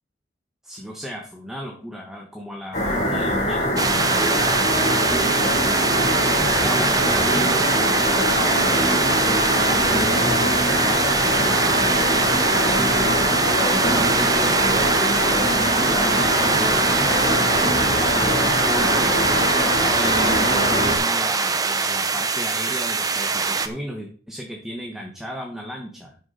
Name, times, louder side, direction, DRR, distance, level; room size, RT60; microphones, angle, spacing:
voice 1, 0.6-3.7 4.9-5.3 6.5-11.9 12.8-13.1 13.6-26.2, equal, 5° right, 0 dB, 1.4 m, -34 dB
sound 1, 2.7-21.0, left 1 dB, 40° left, 3.5 m, -23 dB
sound 2, 3.8-23.7, right 4 dB, 20° right, 0.7 m, -22 dB
12.0 x 6.6 x 4.1 m, 0.42 s
head